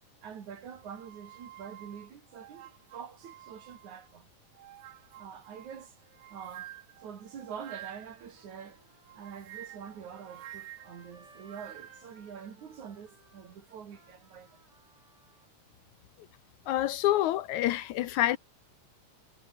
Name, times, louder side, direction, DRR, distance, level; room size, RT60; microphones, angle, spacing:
voice 1, 0.2-4.3 5.2-6.0 6.3-6.7 7.0-8.9 9.2-14.6, right 7 dB, 65° right, 3.9 m, -45 dB
sound 1, 0.8-4.1 4.5-8.3 9.1-12.1, right 14 dB, 90° right, 1.2 m, -50 dB
Trumpet, 7.8-15.5, right 3 dB, 40° right, 7.9 m, -61 dB
voice 2, 16.7-18.4, left 14 dB, 75° left, 2.0 m, -27 dB
omnidirectional pair, 3.7 m